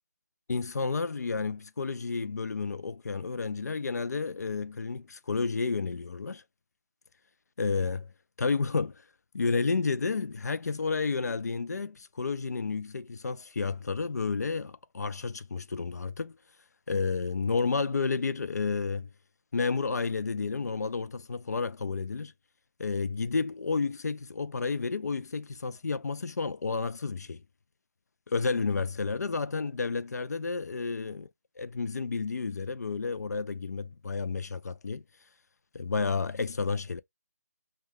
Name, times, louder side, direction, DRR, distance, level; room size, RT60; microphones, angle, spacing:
voice 1, 0.5-6.4 7.6-8.1 8.4-9.0 9.3-16.4 16.9-19.1 19.5-22.3 22.8-27.4 28.3-31.3 31.6-35.0 35.7-37.0, left 4 dB, 90° left, 0.4 m, -31 dB
2.4 x 2.2 x 3.3 m
figure-of-eight pair, 170°, 9 cm